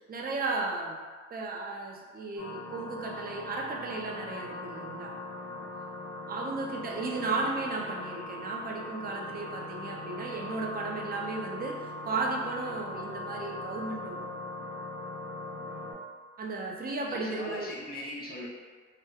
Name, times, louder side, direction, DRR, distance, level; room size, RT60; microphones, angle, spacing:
voice 1, 0.1-1.0 1.3-5.1 6.2-14.4 16.4-17.7, right 3 dB, 30° right, -1 dB, 0.4 m, -34 dB
sound 1, 2.4-15.9, left 1 dB, 85° left, 0.7 m, -40 dB
voice 2, 5.5-5.8 15.5-15.7 17.0-18.5, left 1 dB, 30° left, -6 dB, 0.7 m, -41 dB
2.8 x 2.1 x 2.2 m, 1.5 s
cardioid pair, 90°, 30 cm